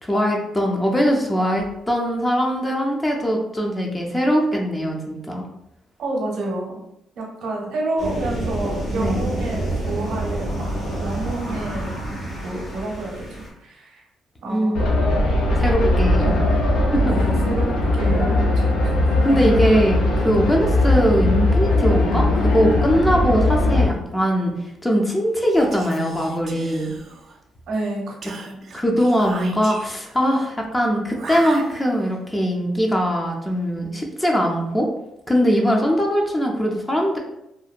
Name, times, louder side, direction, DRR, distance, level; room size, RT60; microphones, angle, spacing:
voice 1, 0.0-5.5 9.0-9.2 14.5-14.9 15.6-16.4 16.9-17.1 19.2-24.5 24.8-26.9 28.7-34.9 35.3-37.2, equal, 15° left, 0 dB, 0.5 m, -21 dB
voice 2, 6.0-6.8 7.2-12.0 12.4-14.1 14.4-14.9 16.2-16.3 17.1-18.7 19.1-19.2 27.7-28.7, right 2 dB, 75° right, -1 dB, 0.7 m, -29 dB
sound 1, 8.0-13.5, right 1 dB, 45° left, 1.1 m, -28 dB
sound 2, 14.7-23.8, left 1 dB, 85° left, 0.5 m, -19 dB
Whispering, 25.5-27.5 28.2-30.2 31.1-32.2, right 4 dB, 55° right, 0.3 m, -38 dB
2.7 x 2.1 x 2.4 m, 0.84 s
cardioid pair, 90°, 0 cm